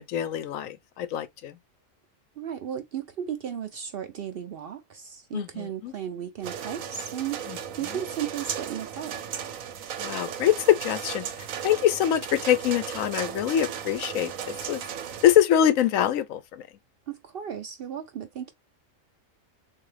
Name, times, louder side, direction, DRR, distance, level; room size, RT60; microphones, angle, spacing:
voice 1, 0.0-1.6 5.3-5.9 7.5-7.6 10.0-11.2 11.6-14.8 15.2-16.7, left 10 dB, 80° left, 1.0 m, -24 dB
voice 2, 2.4-9.2 17.1-18.5, right 9 dB, 60° right, 0.6 m, -35 dB
sound 1, 6.4-15.4, right 8 dB, 80° right, 1.1 m, -36 dB
3.7 x 2.6 x 3.2 m
omnidirectional pair, 1.4 m